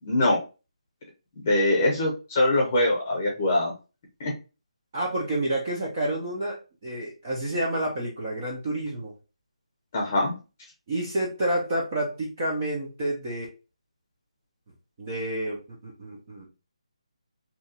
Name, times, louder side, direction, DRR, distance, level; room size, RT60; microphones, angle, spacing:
voice 1, 0.0-0.4 1.4-3.7 4.2-4.3 9.9-10.3, left 1 dB, 15° left, -2 dB, 0.8 m, -23 dB
voice 2, 4.9-9.1 10.9-13.5 15.0-16.5, right 1 dB, 15° right, -4 dB, 0.4 m, -29 dB
2.8 x 2.2 x 4.0 m, 0.31 s
hypercardioid pair, 180°, 4 cm